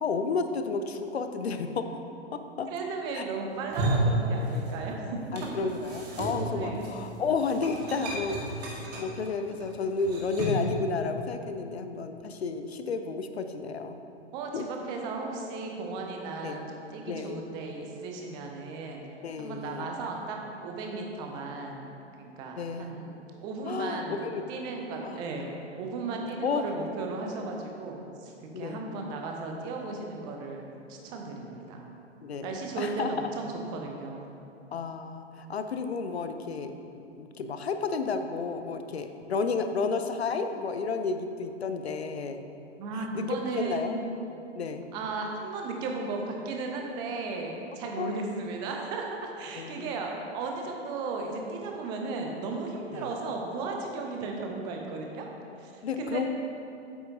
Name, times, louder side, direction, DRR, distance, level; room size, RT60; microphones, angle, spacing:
voice 1, 0.0-1.9 2.3-2.7 3.1-3.2 5.3-14.0 14.5-14.7 16.4-16.6 17.1-17.4 19.2-19.9 22.6-22.9 23.6-24.4 25.0-25.2 26.4-26.6 28.5-29.1 32.2-32.5 32.8-33.3 34.7-42.4 42.9-43.9 44.6-44.9 47.9-48.1 49.6-49.9 52.9-53.1 55.8-56.3, left 4 dB, 65° left, 8 dB, 0.6 m, -32 dB
voice 2, 2.7-5.7 6.3-6.9 14.3-19.0 19.4-21.9 22.2-23.2 23.4-31.8 32.4-34.3 42.8-44.0 44.9-55.3 55.6-55.7 56.0-56.3, right 3 dB, 15° right, 1 dB, 0.5 m, -35 dB
sound 1, 3.5-4.9 5.2-10.7, right 1 dB, 35° right, 1.5 m, -33 dB
8.6 x 7.9 x 2.7 m, 2.7 s
figure-of-eight pair, 115°, 34 cm